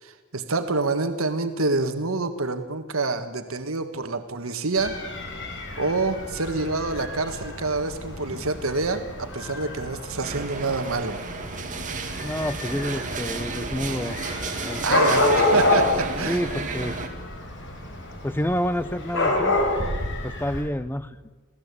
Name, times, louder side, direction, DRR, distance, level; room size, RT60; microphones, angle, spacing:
voice 1, 0.0-5.0 5.8-11.2 14.8-16.4, right 3 dB, 70° right, 8 dB, 1.6 m, -27 dB
Dog / Cat, 4.8-20.6, left 2 dB, 60° left, 4.9 m, -28 dB
sound 1, 10.2-17.1, right 4 dB, 40° right, 2.6 m, -33 dB
voice 2, 12.2-14.2 14.6-14.8 16.3-17.0 18.2-19.6 20.2-21.2, equal, 10° left, 14 dB, 0.8 m, -28 dB
27.5 x 17.5 x 8.3 m, 1.3 s
head